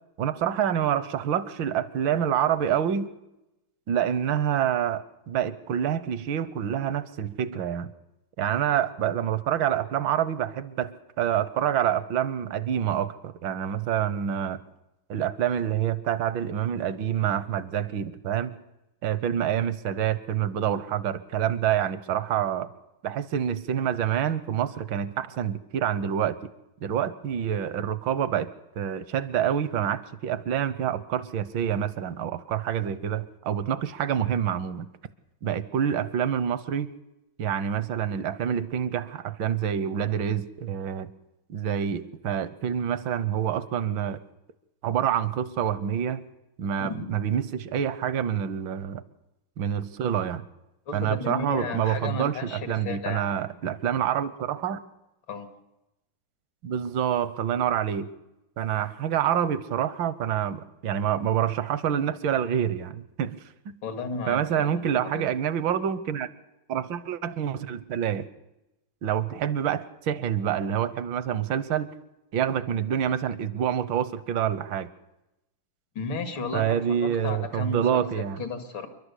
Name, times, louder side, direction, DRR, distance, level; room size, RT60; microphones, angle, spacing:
voice 1, 0.2-3.1 3.9-7.9 8.4-14.6 15.1-18.6 19.0-22.7 23.0-26.4 26.8-28.5 28.8-34.9 35.4-36.9 37.4-41.1 41.5-44.2 44.8-46.2 46.6-49.0 49.6-50.4 50.9-54.8 56.6-58.1 58.6-63.4 63.6-63.8 64.3-66.3 66.7-68.3 69.0-71.9 72.3-74.9 76.5-78.4, right 9 dB, 80° right, 16 dB, 1.7 m, -27 dB
voice 2, 50.9-53.3 55.3-55.5 63.8-64.8 65.1-65.3 75.9-78.9, left 4 dB, 80° left, 8 dB, 2.9 m, -34 dB
28.5 x 12.0 x 8.3 m, 0.95 s
omnidirectional pair, 2.1 m